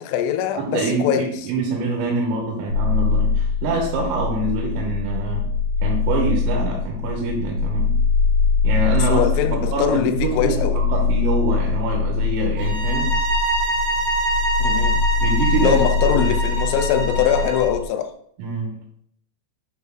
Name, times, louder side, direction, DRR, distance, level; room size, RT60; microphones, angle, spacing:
voice 1, 0.0-1.3 9.1-10.8 14.6-15.0 15.6-18.1, left 9 dB, 85° left, 2.8 m, -22 dB
voice 2, 0.6-5.5 5.8-8.0 8.6-13.1 15.2-16.3 18.4-18.8, right 3 dB, 85° right, 3.7 m, -25 dB
sound 1, 2.7-17.9, left 4 dB, 60° left, 4.9 m, -22 dB
sound 2, 12.6-17.7, right 2 dB, 55° right, 4.4 m, -25 dB
9.1 x 5.5 x 2.3 m
omnidirectional pair, 5.9 m